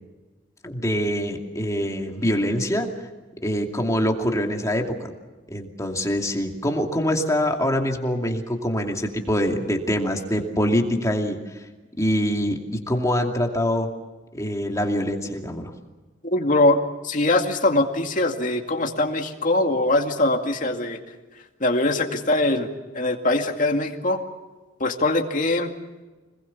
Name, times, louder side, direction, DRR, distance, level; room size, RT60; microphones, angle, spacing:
voice 1, 0.6-2.9 3.4-5.0 5.5-11.6 12.0-13.9 14.3-15.7, equal, 15° left, 2 dB, 2.6 m, -24 dB
voice 2, 16.2-16.8 17.0-21.0 21.6-22.7 22.9-24.2 24.8-25.7, left 2 dB, 45° left, 3 dB, 2.3 m, -22 dB
26.5 x 21.0 x 7.2 m, 1.2 s
head